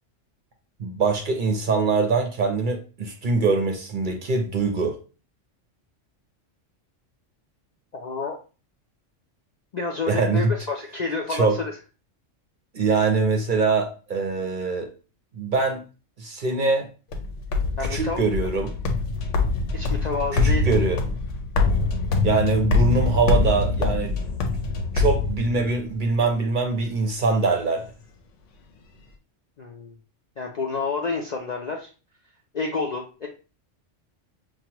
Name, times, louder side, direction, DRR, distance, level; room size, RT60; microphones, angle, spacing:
voice 1, 0.8-5.0 10.1-10.5 11.3-11.6 12.7-14.9 15.3-15.8 16.2-16.9 17.8-18.7 20.3-21.0 22.2-24.1 24.9-27.9, right 4 dB, 50° right, 4 dB, 0.7 m, -23 dB
voice 2, 7.9-8.4 9.7-11.7 17.8-18.2 19.7-20.7 29.6-29.9 30.4-31.9 32.5-33.3, left 4 dB, 55° left, 0 dB, 0.5 m, -29 dB
sound 1, 17.1-25.9, left 3 dB, 75° left, 1.0 m, -24 dB
6.1 x 2.2 x 2.9 m, 0.34 s
omnidirectional pair, 1.3 m